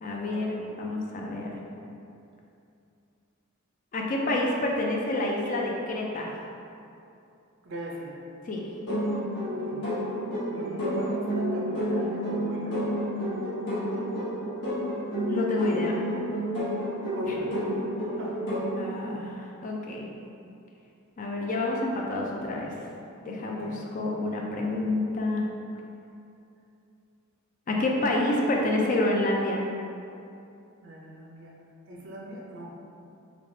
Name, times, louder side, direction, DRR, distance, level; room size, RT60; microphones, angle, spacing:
voice 1, 0.0-1.6 3.9-6.3 8.5-8.6 15.3-16.0 17.3-17.4 18.8-20.1 21.2-22.7 23.2-25.5 27.7-29.6, left 2 dB, 40° left, -1 dB, 0.3 m, -28 dB
voice 2, 7.6-8.2 9.4-9.8 10.5-12.8 17.1-17.5 18.2-18.3 23.4-23.8 30.8-31.5 31.9-32.7, right 1 dB, 60° right, -3 dB, 0.5 m, -40 dB
sound 1, 8.9-18.8, equal, 55° left, 0.8 m, -30 dB
3.3 x 2.9 x 2.7 m, 2.6 s
head